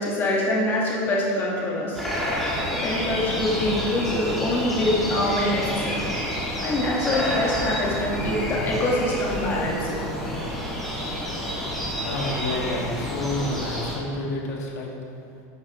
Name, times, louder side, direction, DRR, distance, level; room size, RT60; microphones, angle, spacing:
voice 1, 0.0-2.0 2.8-6.1 6.6-10.0, left 1 dB, 25° left, -5 dB, 2.6 m, -25 dB
sound 1, 1.9-14.0, equal, ahead, 2.2 m, -29 dB
voice 2, 12.0-14.9, left 2 dB, 90° left, -2 dB, 2.5 m, -29 dB
11.5 x 9.6 x 3.7 m, 2.4 s
supercardioid pair, 165°, 9 cm